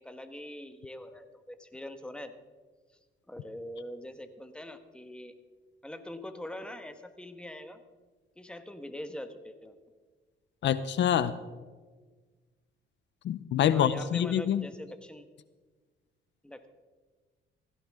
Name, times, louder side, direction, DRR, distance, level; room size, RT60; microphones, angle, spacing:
voice 1, 0.0-2.3 3.3-5.3 5.8-7.8 8.4-9.7 13.7-15.3 16.4-16.7, left 1 dB, 5° left, 8 dB, 1.3 m, -43 dB
voice 2, 10.6-11.4 13.2-14.6, left 9 dB, 65° left, 14 dB, 0.7 m, -26 dB
16.5 x 15.5 x 3.6 m, 1.4 s
cardioid pair, 90°, 20 cm